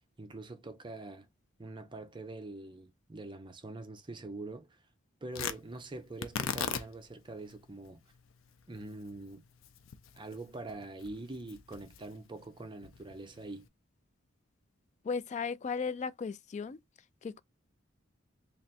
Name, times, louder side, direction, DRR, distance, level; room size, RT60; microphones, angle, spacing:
voice 1, 0.2-1.3 1.6-4.8 5.2-8.0 8.7-9.4 10.1-13.7, right 2 dB, 25° right, 0.6 m, -44 dB
Tearing, 5.3-13.7, left 7 dB, 90° left, 0.5 m, -42 dB
voice 2, 15.0-16.8 17.2-17.4, left 5 dB, 35° left, 0.3 m, -35 dB
3.3 x 2.4 x 4.1 m
head